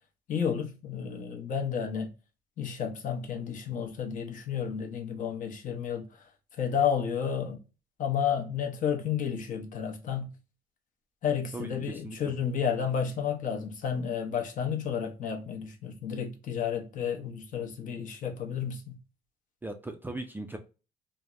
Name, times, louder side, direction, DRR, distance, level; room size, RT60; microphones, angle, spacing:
voice 1, 0.3-2.1 2.6-6.2 6.6-7.6 8.0-10.3 11.2-19.0, left 7 dB, 50° left, 0.7 m, -31 dB
voice 2, 11.5-12.4 19.6-20.6, right 2 dB, 10° right, 0.4 m, -39 dB
3.3 x 2.0 x 2.4 m
cardioid pair, 110°, 17 cm